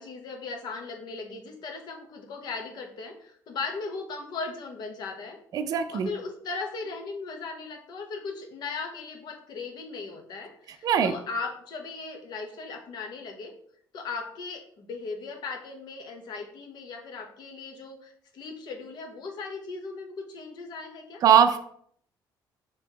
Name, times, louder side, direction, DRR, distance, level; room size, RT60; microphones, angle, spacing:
voice 1, 0.0-5.4 5.9-13.5 13.9-21.2, left 4 dB, 60° left, 3 dB, 0.9 m, -37 dB
voice 2, 5.5-6.1 10.8-11.1 21.2-21.6, right 8 dB, 50° right, 8 dB, 0.4 m, -20 dB
5.4 x 2.9 x 2.9 m, 0.63 s
cardioid pair, 140°, 8 cm